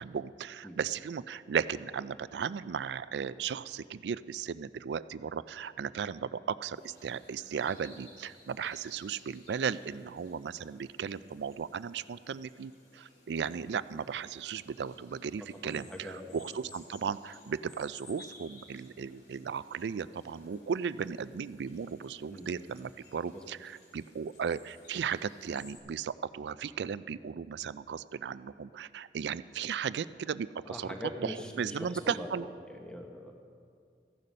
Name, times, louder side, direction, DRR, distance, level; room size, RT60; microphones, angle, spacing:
voice 1, 0.0-30.9 31.2-32.5, right 7 dB, 80° right, 16 dB, 0.3 m, -36 dB
sound 1, 6.7-25.8, left 2 dB, 70° left, 2.4 m, -58 dB
voice 2, 15.4-16.4 22.3-22.5 23.3-23.5 30.7-33.3, left 1 dB, 5° left, 2 dB, 1.1 m, -42 dB
15.0 x 11.0 x 5.4 m, 2.2 s
head